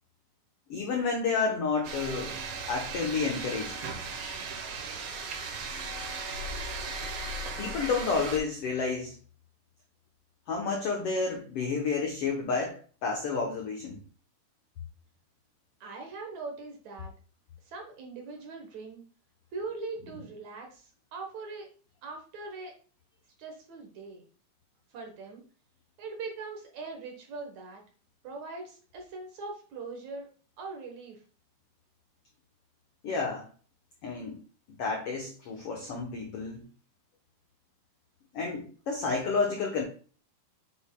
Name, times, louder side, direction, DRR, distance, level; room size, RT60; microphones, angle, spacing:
voice 1, 0.7-2.4 2.7-3.7 7.6-9.1 10.5-14.0 33.0-33.5 34.0-34.4 34.7-36.6 38.3-39.8, left 4 dB, 85° left, 1 dB, 1.3 m, -30 dB
sound 1, 1.8-8.4, right 3 dB, 90° right, 1.2 m, -37 dB
voice 2, 15.8-17.1 17.7-19.0 19.5-21.7 22.0-22.8 23.4-24.2 24.9-25.4 26.0-27.8 28.2-30.3 30.6-31.2, right 3 dB, 60° right, 2 dB, 2.1 m, -41 dB
7.9 x 6.3 x 2.2 m, 0.39 s
omnidirectional pair, 4.2 m